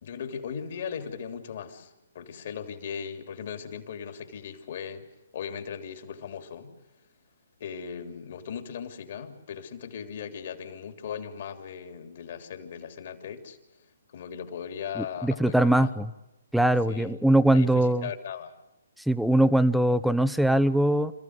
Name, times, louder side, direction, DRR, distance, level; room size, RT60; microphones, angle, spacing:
voice 1, 0.0-5.1 5.3-6.7 7.6-13.6 14.1-15.9 16.9-17.2 17.5-18.5, left 7 dB, 50° left, 6 dB, 3.2 m, -38 dB
voice 2, 15.0-16.1 16.5-18.1 19.1-21.1, right 1 dB, ahead, 12 dB, 0.8 m, -22 dB
27.0 x 15.0 x 9.6 m, 0.95 s
hypercardioid pair, 140°, 0 cm